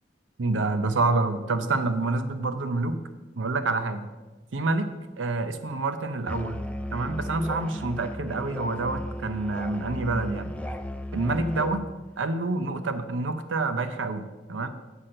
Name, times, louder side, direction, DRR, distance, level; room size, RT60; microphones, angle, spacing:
voice 1, 0.4-3.0 3.4-4.1 4.5-4.9 5.2-6.6 6.9-10.5 11.1-11.8 12.2-14.7, right 3 dB, 85° right, 10 dB, 0.6 m, -27 dB
Musical instrument, 6.3-11.9, left 1 dB, 5° left, 0.4 m, -35 dB
8.1 x 5.9 x 6.4 m, 1.2 s
head